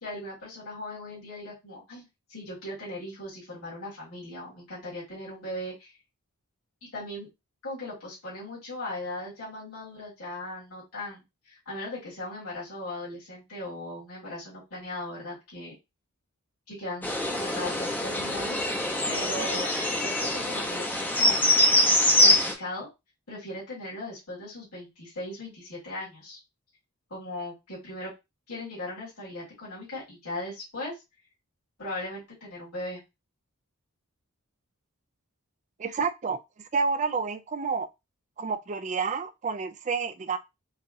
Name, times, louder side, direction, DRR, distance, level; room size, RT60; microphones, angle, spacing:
voice 1, 0.0-2.0 2.3-5.9 6.9-7.3 7.6-15.7 16.7-21.4 22.2-22.9 23.3-26.4 27.1-28.1 28.5-30.9 31.8-33.0, left 1 dB, 75° left, 2.3 m, -38 dB
sound 1, 17.0-22.5, left 1 dB, 10° left, 0.7 m, -24 dB
voice 2, 35.8-36.4 36.7-37.9 38.4-40.4, right 5 dB, 30° right, 0.3 m, -29 dB
4.7 x 2.4 x 2.6 m
head